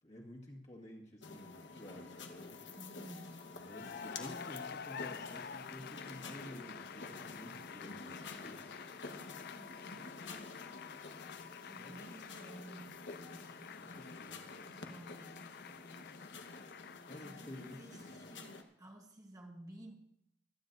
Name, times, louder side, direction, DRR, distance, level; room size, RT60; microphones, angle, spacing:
voice 1, 0.0-2.6 3.5-8.7 11.8-12.0 13.8-14.5 17.1-18.2, left 1 dB, 40° left, -2 dB, 1.9 m, -52 dB
sound 1, 1.2-18.6, left 3 dB, 80° left, 1.3 m, -50 dB
voice 2, 2.7-3.5 9.3-10.1 11.6-13.9 14.6-16.0 17.2-19.9, right 1 dB, 20° right, 2 dB, 1.2 m, -54 dB
Cheering / Applause, 3.6-18.5, left 7 dB, 55° left, 0.4 m, -50 dB
24.5 x 9.6 x 2.7 m, 0.74 s
head